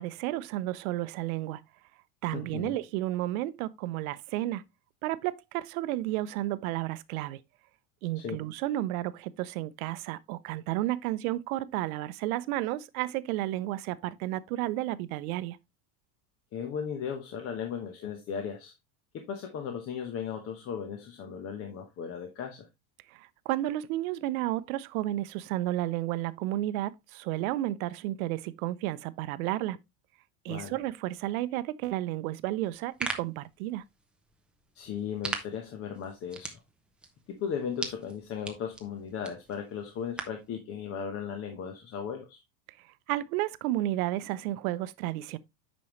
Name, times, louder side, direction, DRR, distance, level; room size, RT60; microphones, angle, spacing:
voice 1, 0.0-1.6 2.2-4.6 5.0-7.4 8.0-15.6 23.1-29.8 30.4-33.8 43.1-45.4, right 15 dB, 70° right, 0.7 m, -32 dB
voice 2, 2.3-2.8 8.2-8.4 16.5-18.7 19.1-22.7 30.5-30.8 34.7-36.6 37.3-42.4, left 7 dB, 30° left, 1.1 m, -36 dB
sound 1, 32.7-40.5, right 2 dB, ahead, 0.5 m, -41 dB
8.6 x 5.3 x 3.1 m
supercardioid pair, 160°, 44 cm